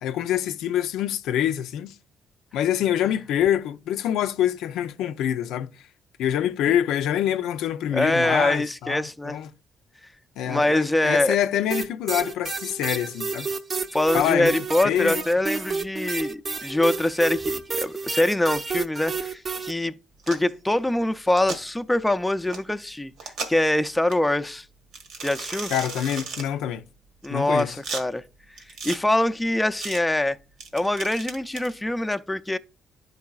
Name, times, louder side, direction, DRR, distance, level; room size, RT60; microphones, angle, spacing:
voice 1, 0.0-2.0 2.5-5.8 6.2-9.5 10.4-13.5 14.1-15.2 25.7-26.9 27.3-27.8, left 10 dB, 90° left, 0.4 m, -25 dB
voice 2, 7.9-9.4 10.4-11.4 13.9-20.0 20.3-23.1 23.5-24.7 25.2-25.7 27.2-28.2 28.8-30.4 30.7-32.6, left 1 dB, 10° left, 0.4 m, -24 dB
sound 1, 11.7-19.7, right 4 dB, 40° right, 0.6 m, -30 dB
sound 2, 20.2-20.5 21.3-21.6 22.5-22.6 23.2-23.7 24.1-24.2 24.9-26.5 27.2-28.0 28.6-29.0 29.8-30.0 30.6-31.7, right 4 dB, 80° right, 1.4 m, -35 dB
11.5 x 4.7 x 2.3 m
cardioid pair, 90°, 0 cm